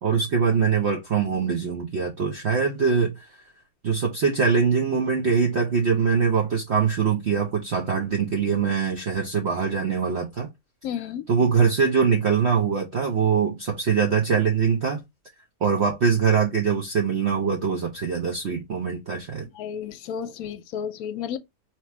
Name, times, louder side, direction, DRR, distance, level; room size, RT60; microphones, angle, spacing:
voice 1, 0.0-3.3 3.8-10.5 11.3-15.0 15.6-19.5, right 6 dB, 55° right, 0.8 m, -23 dB
voice 2, 10.8-11.2 19.4-21.4, left 8 dB, 70° left, 1.0 m, -32 dB
3.0 x 3.0 x 4.4 m
omnidirectional pair, 1.7 m